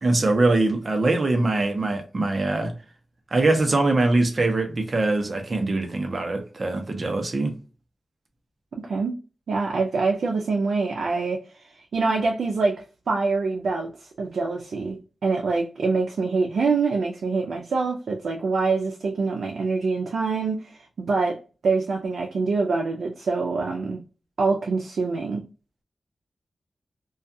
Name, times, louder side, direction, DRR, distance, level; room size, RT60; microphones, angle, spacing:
voice 1, 0.0-2.7 3.3-7.5, right 2 dB, 45° right, 0.7 m, -22 dB
voice 2, 8.8-9.1 9.5-15.0 15.2-20.8 21.1-21.4 21.6-24.0 24.4-25.4, right 4 dB, 90° right, 0.4 m, -25 dB
2.3 x 2.3 x 2.6 m
wide cardioid pair, 105°, 0 cm